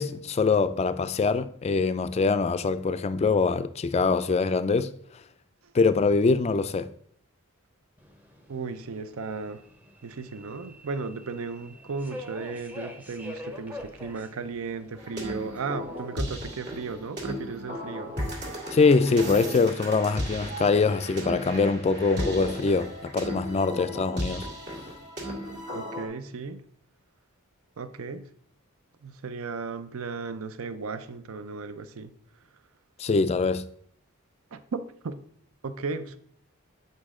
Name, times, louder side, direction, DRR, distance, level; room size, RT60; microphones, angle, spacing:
voice 1, 0.0-4.9 5.7-6.9 18.7-24.5 33.0-33.7, left 4 dB, 30° left, 0.3 m, -23 dB
Subway metro underground, 8.0-18.5, left 1 dB, 10° right, 0.8 m, -46 dB
voice 2, 8.5-9.6 10.0-18.1 25.7-26.6 27.8-28.2 29.0-32.1 34.5-35.1 35.6-36.2, right 4 dB, 70° right, 0.6 m, -35 dB
sound 1, 15.0-26.1, equal, 50° right, 1.9 m, -35 dB
8.3 x 5.3 x 3.7 m
head